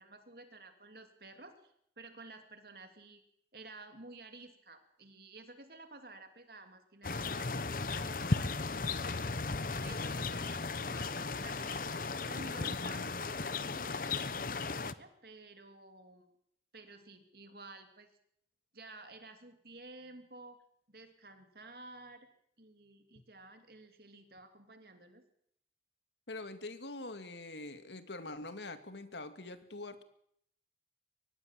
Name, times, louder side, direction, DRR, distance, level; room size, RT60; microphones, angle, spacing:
voice 1, 0.0-3.2 3.5-9.3 9.8-11.8 12.3-16.3 16.7-18.1 18.7-20.6 20.9-22.3 22.6-25.2, right 2 dB, 60° right, 7 dB, 2.9 m, -53 dB
sound 1, 7.0-14.9, left 3 dB, 50° left, 0.9 m, -36 dB
voice 2, 26.3-30.0, left 2 dB, 80° left, 9 dB, 2.2 m, -44 dB
23.5 x 19.5 x 7.6 m, 0.71 s
head